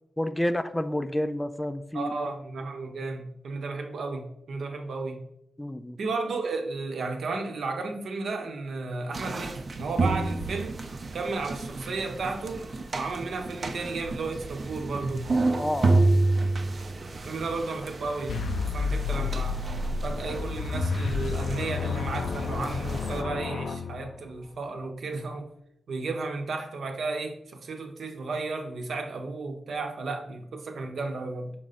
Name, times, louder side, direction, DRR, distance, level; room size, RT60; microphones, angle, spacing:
voice 1, 0.2-2.1 5.6-6.0 15.6-16.0, left 1 dB, 10° left, 10 dB, 0.3 m, -29 dB
voice 2, 1.9-5.2 6.0-10.8 11.1-12.7 12.9-15.3 17.2-19.6 20.0-25.5 25.9-31.5, right 3 dB, 75° right, 4 dB, 0.9 m, -33 dB
sound 1, 9.1-23.2, right 2 dB, 45° right, 0.6 m, -30 dB
sound 2, 18.3-24.5, left 5 dB, 75° left, 0.5 m, -31 dB
6.0 x 3.8 x 4.1 m, 0.76 s
wide cardioid pair, 125°, 0 cm